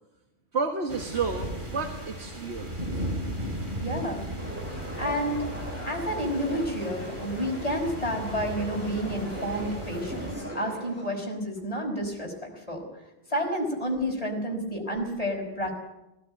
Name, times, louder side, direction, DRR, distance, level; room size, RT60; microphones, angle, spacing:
voice 1, 0.5-2.8, right 4 dB, 80° right, 4 dB, 1.9 m, -31 dB
sound 1, 0.9-10.4, equal, 50° right, 4.0 m, -36 dB
voice 2, 3.8-4.3 5.0-5.5 5.8-12.8 13.3-15.7, equal, 35° left, 1 dB, 5.3 m, -30 dB
sound 2, 4.4-11.1, equal, 10° right, 6.3 m, -39 dB
18.5 x 17.0 x 9.0 m, 0.96 s
omnidirectional pair, 1.1 m